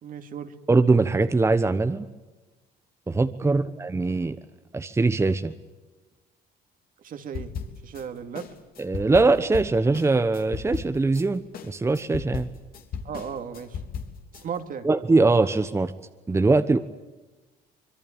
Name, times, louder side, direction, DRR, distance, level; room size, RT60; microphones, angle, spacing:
voice 1, 0.0-0.5 3.4-3.6 7.0-7.5 7.8-8.5 13.0-13.8 14.3-14.9, right 7 dB, 55° right, 7 dB, 2.5 m, -36 dB
voice 2, 0.7-2.1 3.1-4.4 4.7-5.5 8.8-11.4 11.7-12.5 14.8-15.9 16.3-16.8, right 3 dB, 15° right, 9 dB, 1.1 m, -21 dB
sound 1, 7.3-8.0 8.3-11.2 11.5-14.4, left 6 dB, 60° left, 3.1 m, -36 dB
25.5 x 22.5 x 8.9 m, 1.2 s
cardioid pair, 110°, 17 cm